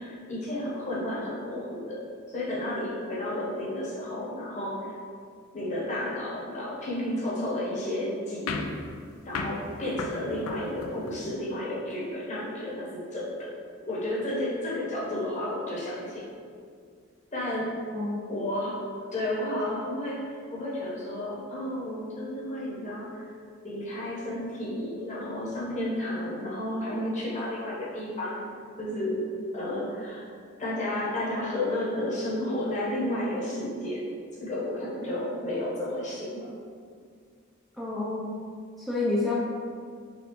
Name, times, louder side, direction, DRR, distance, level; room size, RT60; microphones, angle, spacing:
voice 1, 0.0-2.0 2.3-5.0 5.5-8.8 9.2-13.5 13.9-16.3 17.3-17.9 18.3-18.8 19.1-23.3 23.6-28.5 28.8-30.2 30.6-34.1 34.4-36.5, left 1 dB, 35° left, -6 dB, 1.0 m, -32 dB
sound 1, 8.5-11.3, left 4 dB, 85° left, 0.4 m, -36 dB
voice 2, 17.9-18.4 35.1-35.2 37.7-38.3 38.8-39.3, left 2 dB, ahead, -9 dB, 0.5 m, -29 dB
4.0 x 3.5 x 3.0 m, 2.1 s
head